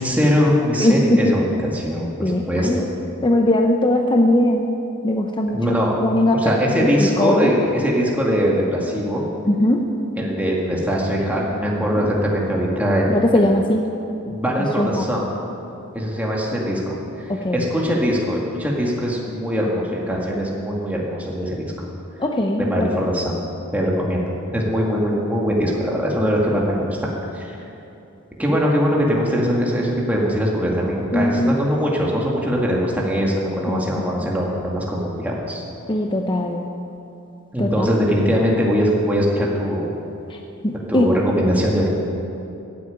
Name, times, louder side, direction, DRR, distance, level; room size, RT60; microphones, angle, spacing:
voice 1, 0.0-2.9 5.5-6.0 6.3-9.3 10.2-13.5 14.3-15.2 15.9-17.0 17.5-21.9 22.6-23.3 23.7-24.2 24.5-27.5 28.4-35.6 37.5-39.9 40.9-41.9, equal, 5° right, -3 dB, 2.0 m, -21 dB
voice 2, 0.8-1.3 2.2-2.9 3.2-4.6 5.0-5.6 6.0-7.5 9.5-9.8 12.0-12.1 13.1-13.8 14.8-15.1 17.3-17.7 22.2-22.9 31.1-31.6 33.7-33.8 35.9-36.7 37.6-37.9 40.3-40.4 40.6-41.1 41.3-41.4, left 1 dB, 20° left, 2 dB, 0.7 m, -20 dB
15.0 x 8.6 x 8.8 m, 2.8 s
head